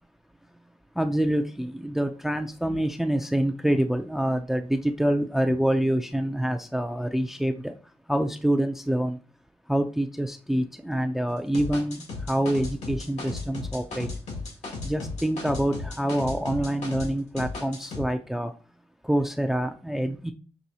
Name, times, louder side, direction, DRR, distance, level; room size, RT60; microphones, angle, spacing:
voice 1, 1.0-7.7 8.1-9.2 9.7-14.1 14.8-18.5 19.0-20.3, right 1 dB, 5° right, 0.4 m, -26 dB
sound 1, 11.5-17.1 17.4-18.0, left 3 dB, 85° left, 1.7 m, -35 dB
6.1 x 3.0 x 2.8 m
cardioid pair, 80°, 11 cm